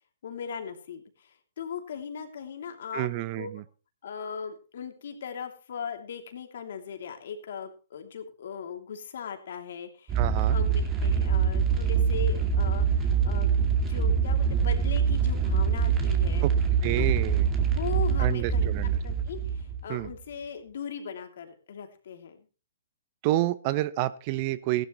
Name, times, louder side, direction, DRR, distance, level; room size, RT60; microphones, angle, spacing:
voice 1, 0.2-3.1 3.4-3.5 4.0-13.5 13.8-16.4 17.0-17.2 17.7-18.7 19.0-22.4, left 7 dB, 65° left, 5 dB, 2.8 m, -39 dB
voice 2, 2.9-3.6 10.1-10.6 16.4-16.5 16.8-17.5 18.2-19.0 19.9-20.1 23.2-24.9, right 16 dB, 40° right, 17 dB, 0.8 m, -29 dB
sound 1, 10.1-20.1, right 6 dB, 20° right, 2.4 m, -24 dB
15.5 x 12.0 x 3.1 m, 0.33 s
hypercardioid pair, 140°, 0 cm